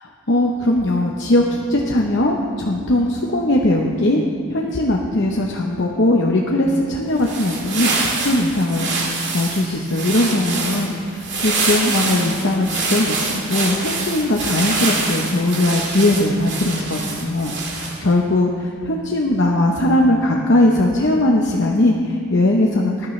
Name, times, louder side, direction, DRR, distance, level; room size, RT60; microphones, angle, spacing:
voice 1, 0.3-10.9 11.4-23.1, left 1 dB, 50° left, -1 dB, 0.9 m, -19 dB
sound 1, 7.1-18.1, right 3 dB, 50° right, 2.2 m, -25 dB
20.0 x 12.0 x 3.3 m, 2.2 s
head